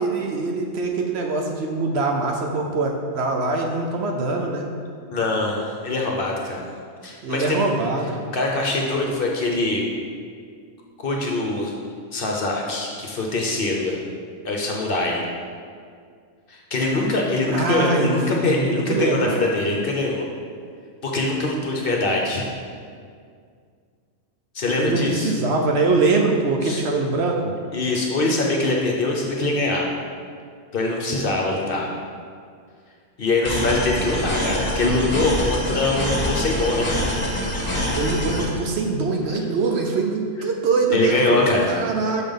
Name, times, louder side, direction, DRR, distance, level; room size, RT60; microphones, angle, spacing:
voice 1, 0.0-4.7 7.2-8.2 17.5-19.4 24.8-27.5 37.9-42.3, right 3 dB, 60° right, 2 dB, 0.8 m, -23 dB
voice 2, 5.1-6.7 7.0-7.7 8.3-9.8 11.0-11.7 12.1-14.0 14.4-15.2 16.5-20.3 21.0-22.4 24.5-25.3 26.6-26.8 27.7-29.9 30.7-31.9 33.2-36.9 40.9-41.8, left 2 dB, 50° left, -1 dB, 0.8 m, -23 dB
sound 1, 33.4-38.4, equal, 35° left, 1.5 m, -25 dB
6.3 x 3.8 x 5.2 m, 2.1 s
omnidirectional pair, 1.3 m